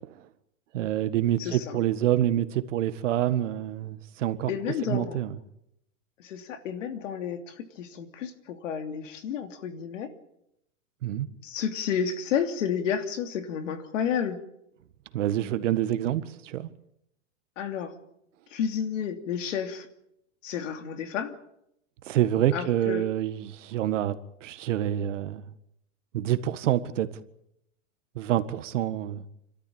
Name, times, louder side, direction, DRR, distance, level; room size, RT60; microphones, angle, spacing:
voice 1, 0.7-4.5 4.9-5.3 11.0-11.3 15.1-16.7 22.1-24.2 24.4-25.4 26.1-27.1 28.1-29.2, right 12 dB, 70° right, 1.7 m, -27 dB
voice 2, 1.4-1.8 4.5-5.2 6.2-10.1 11.4-14.4 17.6-17.9 18.5-19.9 20.4-21.4 22.5-23.1, left 8 dB, 70° left, 3.0 m, -31 dB
29.0 x 13.0 x 8.8 m
supercardioid pair, 155°, 38 cm